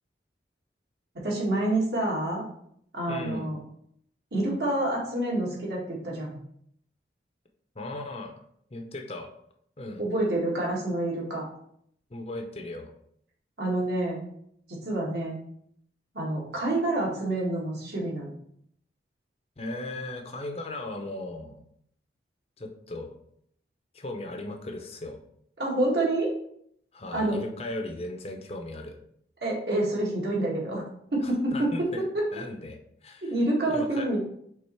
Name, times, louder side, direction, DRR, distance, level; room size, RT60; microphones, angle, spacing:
voice 1, 1.2-2.4 2.9-3.6 4.3-6.4 10.0-11.5 13.6-14.2 14.7-15.4 16.1-18.3 25.6-26.3 27.1-27.4 29.4-30.8 31.1-31.9 32.1-32.3 33.2-34.2, right 1 dB, 65° right, -3 dB, 2.0 m, -27 dB
voice 2, 3.1-3.5 7.7-8.3 8.7-9.3 9.8-10.0 12.1-12.9 19.6-21.6 22.6-23.2 23.9-25.2 26.9-29.0 31.2-32.0 32.3-33.3 33.6-34.1, left 2 dB, 35° left, 4 dB, 0.6 m, -37 dB
5.4 x 3.9 x 4.5 m, 0.69 s
head